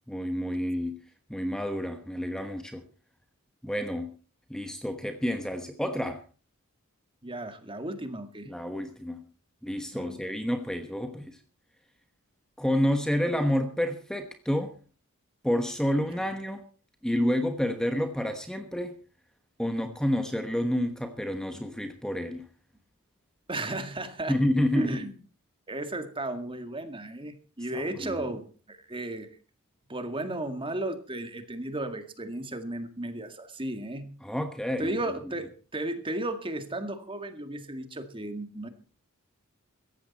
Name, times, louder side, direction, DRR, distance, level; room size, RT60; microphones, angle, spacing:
voice 1, 0.1-1.0 1.3-2.8 3.6-4.2 4.5-6.2 8.5-9.3 9.6-11.4 12.6-14.7 15.4-16.6 17.0-18.9 19.6-22.5 24.3-25.0 27.7-28.2 34.2-35.1, equal, 5° left, 7 dB, 1.2 m, -29 dB
voice 2, 7.2-8.5 9.9-10.4 16.1-16.3 23.5-24.4 24.7-25.2 25.7-29.4 29.9-34.2 34.8-38.7, right 1 dB, 25° right, 8 dB, 2.0 m, -34 dB
17.0 x 14.5 x 4.2 m, 0.38 s
head